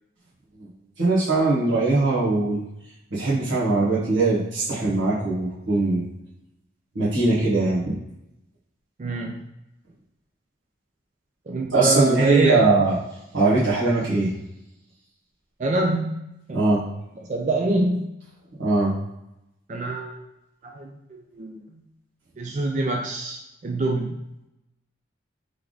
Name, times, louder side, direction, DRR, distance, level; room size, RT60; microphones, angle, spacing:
voice 1, 1.0-2.6 3.1-6.1 6.9-8.0 11.7-12.9 13.3-14.3 16.5-16.8 18.6-18.9, right 3 dB, 75° right, -8 dB, 1.4 m, -21 dB
voice 2, 9.0-9.4 11.5-12.7 15.6-16.2 16.5-16.6 17.3-18.1 19.7-20.2 20.6-21.8 22.4-24.1, right 2 dB, 40° right, 0 dB, 0.4 m, -25 dB
3.4 x 3.4 x 3.8 m, 0.87 s
head